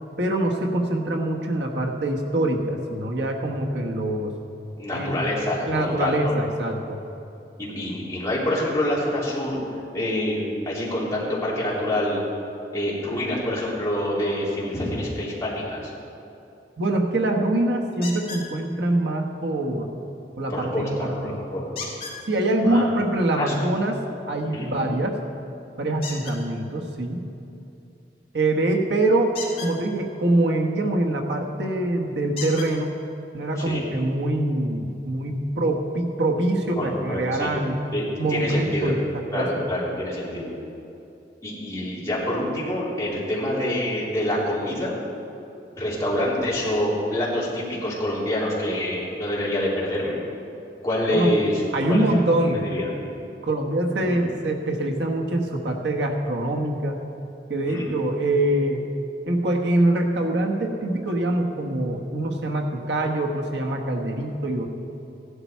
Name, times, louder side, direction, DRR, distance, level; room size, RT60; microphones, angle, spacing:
voice 1, 0.2-4.3 4.9-5.3 5.7-7.0 16.8-19.9 20.4-21.4 22.3-24.0 24.3-25.2 25.8-27.2 28.3-33.0 33.3-37.8 38.2-39.5 51.1-51.4 51.7-52.6 53.4-57.0 57.5-58.9 59.3-64.7, right 1 dB, 80° right, 1 dB, 1.3 m, -24 dB
voice 2, 4.8-6.3 7.6-9.6 9.9-10.4 10.6-12.2 12.7-15.9 20.5-21.8 22.6-22.8 23.4-23.5 24.5-24.7 33.6-33.8 36.7-37.5 37.9-38.9 39.3-40.5 41.4-45.0 45.7-50.2 50.8-51.6 51.9-52.9 54.0-54.2 57.7-57.9, left 1 dB, 20° left, -8 dB, 3.3 m, -26 dB
sound 1, 18.0-18.5 21.8-22.2 26.0-26.4 29.3-29.7 31.4-31.5 32.4-32.7 33.7-33.8 34.3-34.4, left 4 dB, 35° left, 3.7 m, -34 dB
16.0 x 11.5 x 4.6 m, 2.8 s
head